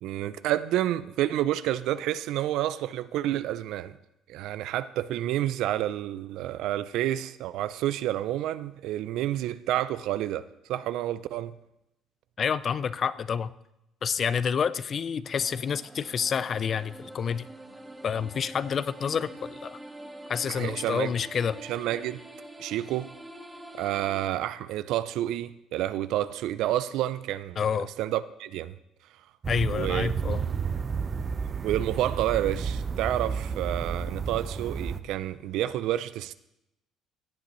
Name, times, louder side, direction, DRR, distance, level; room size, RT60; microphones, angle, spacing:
voice 1, 0.0-4.0 4.3-11.5 20.5-21.1 21.6-22.2 22.6-23.1 23.7-27.6 28.0-28.7 29.7-30.5 31.6-36.3, right 13 dB, 80° right, 0.4 m, -29 dB
voice 2, 12.4-13.5 14.0-17.4 18.0-19.8 20.3-21.6 27.6-27.9 29.5-30.4, left 7 dB, 45° left, 0.4 m, -28 dB
sound 1, 15.3-24.3, right 1 dB, 10° right, 1.0 m, -45 dB
sound 2, 29.4-35.0, right 5 dB, 35° right, 0.6 m, -31 dB
16.5 x 8.4 x 3.1 m
cardioid pair, 105°, 0 cm